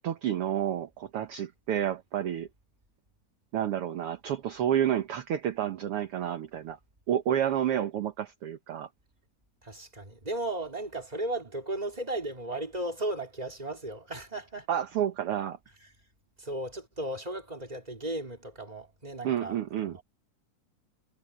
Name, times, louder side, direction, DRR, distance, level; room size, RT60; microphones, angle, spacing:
voice 1, 0.0-2.5 3.5-6.8 7.1-8.9 14.7-15.6 19.2-20.0, right 10 dB, 60° right, 1.7 m, -30 dB
voice 2, 9.6-14.7 16.4-19.6 19.9-20.0, right 1 dB, 10° right, 3.5 m, -35 dB
omnidirectional pair, 3.6 m